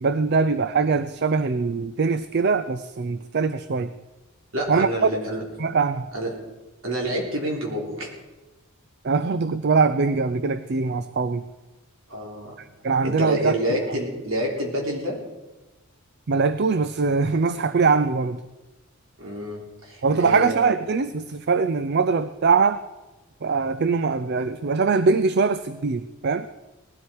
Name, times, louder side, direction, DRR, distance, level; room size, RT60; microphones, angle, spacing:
voice 1, 0.0-3.9 4.7-5.1 5.6-6.1 9.0-11.4 12.6-13.5 16.3-18.4 20.0-22.8 23.4-26.5, right 4 dB, 50° right, 12 dB, 0.5 m, -22 dB
voice 2, 4.5-5.4 6.1-6.3 6.8-8.1 12.1-12.5 13.0-15.2 19.2-20.6, right 1 dB, 65° right, -1 dB, 3.7 m, -27 dB
19.0 x 12.5 x 4.7 m, 1.1 s
head